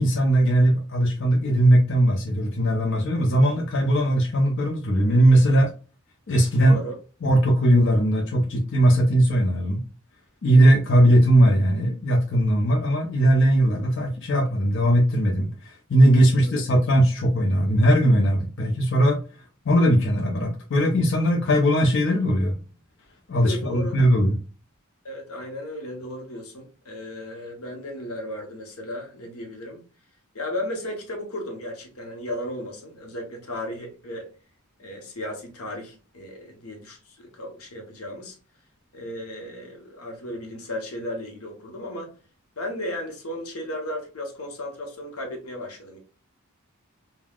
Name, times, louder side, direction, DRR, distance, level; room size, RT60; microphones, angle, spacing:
voice 1, 0.0-5.7 6.3-6.8 7.2-9.8 10.4-19.2 19.7-22.6 23.3-24.3, right 1 dB, 60° left, 0.6 m, -19 dB
voice 2, 6.6-7.0 16.3-16.5 23.3-24.0 25.0-29.8 30.3-34.3 34.8-38.4 38.9-42.1 42.6-46.0, left 1 dB, 90° left, 0.9 m, -35 dB
3.4 x 2.2 x 2.3 m
head